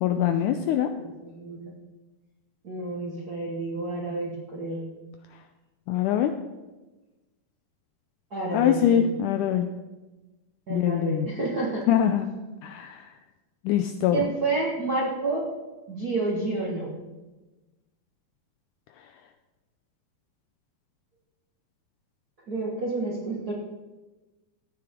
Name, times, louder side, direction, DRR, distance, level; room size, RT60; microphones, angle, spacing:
voice 1, 0.0-0.9 5.9-6.3 8.5-9.7 10.7-11.3 11.9-12.3 12.6-13.0 13.7-14.3, left 10 dB, 90° left, 7 dB, 1.8 m, -23 dB
voice 2, 1.0-1.7 2.6-4.8 8.3-9.1 10.7-11.8 14.1-15.5 15.9-16.9 22.5-23.5, right 2 dB, 50° right, -4 dB, 1.1 m, -29 dB
14.5 x 9.5 x 3.6 m, 1.1 s
omnidirectional pair, 4.1 m